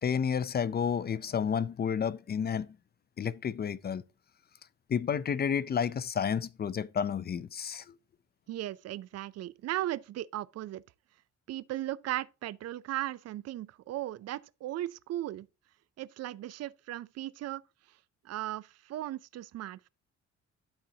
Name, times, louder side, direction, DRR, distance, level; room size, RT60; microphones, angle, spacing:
voice 1, 0.0-2.7 3.2-4.0 4.9-7.9, left 7 dB, 35° left, 0.4 m, -31 dB
voice 2, 8.5-10.8 11.5-15.5 16.0-17.6 18.2-19.9, right 14 dB, 55° right, 0.4 m, -37 dB
12.0 x 4.1 x 2.7 m
cardioid pair, 90°, 30 cm